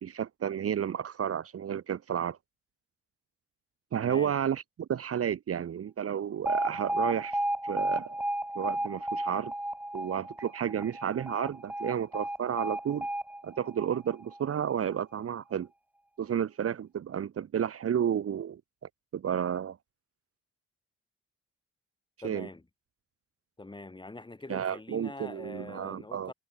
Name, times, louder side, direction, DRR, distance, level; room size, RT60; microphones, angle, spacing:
voice 1, 0.0-2.4 3.9-7.4 7.6-8.2 8.5-9.5 9.9-13.1 13.4-15.7 16.2-18.6 19.1-19.8 22.2-22.5 24.5-26.3, right 9 dB, 50° right, 1.4 m, -31 dB
voice 2, 4.0-4.4 22.2-22.6 23.6-26.3, left 2 dB, 15° left, 3.2 m, -44 dB
Alarm, 6.5-14.5, right 1 dB, 5° right, 1.1 m, -33 dB
cardioid pair, 90°, 30 cm